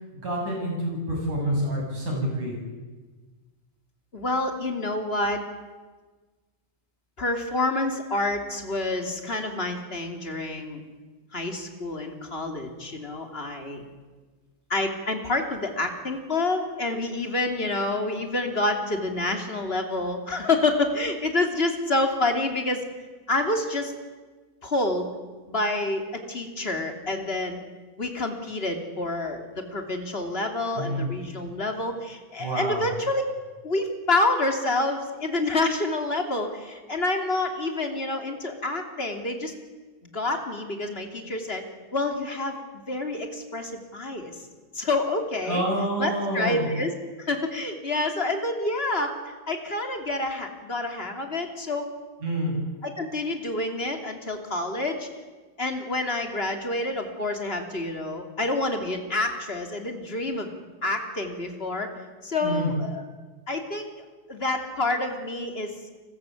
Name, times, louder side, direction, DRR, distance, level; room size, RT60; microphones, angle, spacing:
voice 1, 0.1-2.6 30.8-31.1 32.4-32.8 45.5-46.7 52.2-52.6 62.4-62.7, equal, 55° right, 0 dB, 9.3 m, -27 dB
voice 2, 4.1-5.5 7.2-10.8 11.3-13.9 14.7-22.8 23.3-23.9 24.6-25.1 25.5-27.6 28.0-33.2 33.6-39.5 40.1-41.6 41.9-44.4 44.7-45.6 46.0-46.9 47.2-51.9 52.8-55.1 55.6-60.5 60.8-61.9 62.2-63.0 63.5-63.9 64.3-65.8, left 2 dB, 20° left, 4 dB, 2.7 m, -28 dB
30.0 x 21.0 x 8.5 m, 1.3 s
omnidirectional pair, 4.0 m